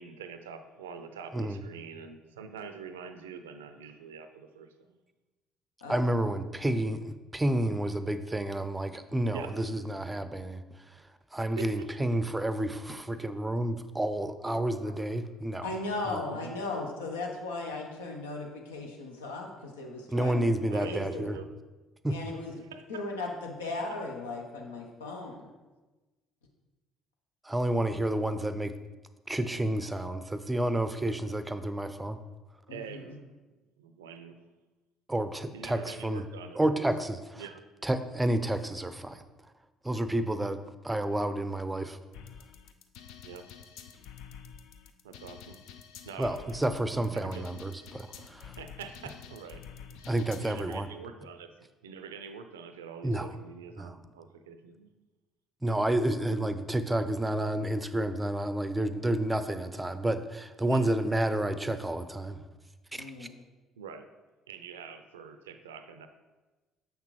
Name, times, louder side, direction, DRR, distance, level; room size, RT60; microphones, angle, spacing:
voice 1, 0.0-5.0 9.3-9.6 11.6-11.9 16.2-16.6 20.7-21.5 22.5-23.0 32.7-33.3 33.8-34.4 35.5-36.9 37.4-37.6 43.2-43.5 45.0-45.6 46.0-47.5 48.6-49.6 50.4-54.9 60.7-60.9 63.8-64.1 64.5-66.1, right 6 dB, 80° right, 8 dB, 0.4 m, -45 dB
voice 2, 5.9-10.6 10.9-11.0 11.3-15.7 16.1-16.2 20.1-21.4 22.0-22.2 27.4-28.7 29.3-32.2 35.1-36.3 36.6-37.4 37.8-39.2 39.8-40.6 40.8-42.0 46.2-48.5 50.1-50.9 53.0-53.3 53.8-53.9 55.6-62.4 62.9-63.3, right 1 dB, 15° right, 11 dB, 0.5 m, -30 dB
voice 3, 15.6-21.3 22.1-22.5 22.9-25.4 32.7-33.2 63.0-63.3, left 2 dB, 80° left, 1 dB, 0.8 m, -37 dB
sound 1, 42.1-50.7, left 8 dB, 65° left, 0.4 m, -49 dB
6.7 x 5.9 x 3.1 m, 1.2 s
figure-of-eight pair, 55°, 0 cm